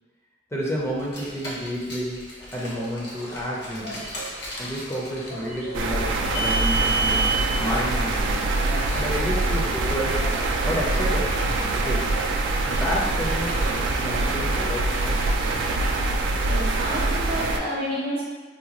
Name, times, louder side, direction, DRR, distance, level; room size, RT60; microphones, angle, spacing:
voice 1, 0.5-4.1 4.6-7.2 7.6-8.5 8.9-10.3 10.6-11.3 11.7-12.1 12.6-15.3, equal, 15° left, -5 dB, 0.5 m, -30 dB
Car, 0.9-10.4, right 3 dB, 60° left, 0.8 m, -32 dB
sound 1, 2.6-14.2, right 1 dB, 90° left, 1.2 m, -43 dB
sound 2, 5.7-17.6, right 2 dB, 80° right, 0.3 m, -24 dB
voice 2, 16.4-18.2, equal, 55° right, -5 dB, 0.7 m, -29 dB
3.8 x 2.2 x 2.9 m, 1.4 s
head